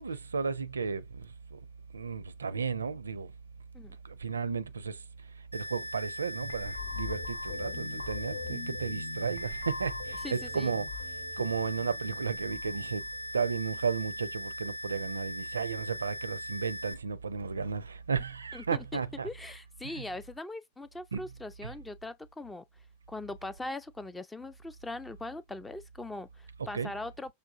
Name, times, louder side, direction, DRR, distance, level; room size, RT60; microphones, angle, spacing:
voice 1, 0.0-1.6 1.9-3.3 4.0-5.0 5.5-10.9 11.4-13.1 13.3-19.3 19.8-20.0 21.1-21.2 21.6-21.7 26.7-26.9, right 5 dB, 75° right, 0.5 m, -34 dB
sound 1, 5.5-16.9, equal, 90° left, 1.3 m, -40 dB
sound 2, 6.4-13.3, left 4 dB, 70° left, 0.9 m, -42 dB
voice 2, 10.2-10.8 18.5-22.6 23.1-27.3, left 2 dB, 10° left, 0.4 m, -41 dB
6.4 x 2.4 x 2.5 m
figure-of-eight pair, 90°, 0 cm